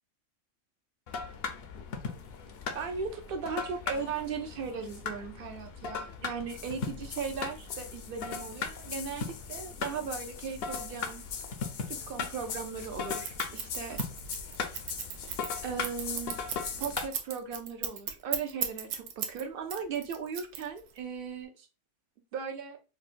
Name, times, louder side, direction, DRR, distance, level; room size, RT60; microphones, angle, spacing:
sound 1, 1.1-17.1, left 5 dB, 60° left, 0.7 m, -38 dB
voice 1, 2.7-11.2 11.9-14.0 15.6-16.4 16.8-21.7 22.3-22.8, right 6 dB, 55° right, 6 dB, 0.7 m, -37 dB
Scissors, 13.2-19.4 19.7-21.0, right 8 dB, 90° right, 1.0 m, -35 dB
4.4 x 2.1 x 2.4 m, 0.32 s
omnidirectional pair, 1.3 m